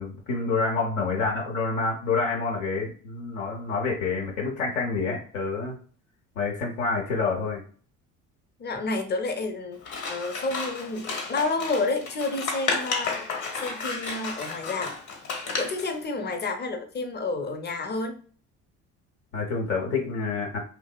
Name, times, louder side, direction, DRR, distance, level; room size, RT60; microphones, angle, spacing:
voice 1, 0.0-5.8 6.4-7.6 19.3-20.6, left 4 dB, 80° left, -2 dB, 0.8 m, -28 dB
voice 2, 8.6-14.9 15.6-18.2, left 3 dB, 25° left, 5 dB, 0.6 m, -30 dB
Scissors, 9.8-15.9, left 4 dB, 50° left, 1.0 m, -32 dB
2.7 x 2.1 x 2.3 m, 0.42 s
hypercardioid pair, 55°, 41 cm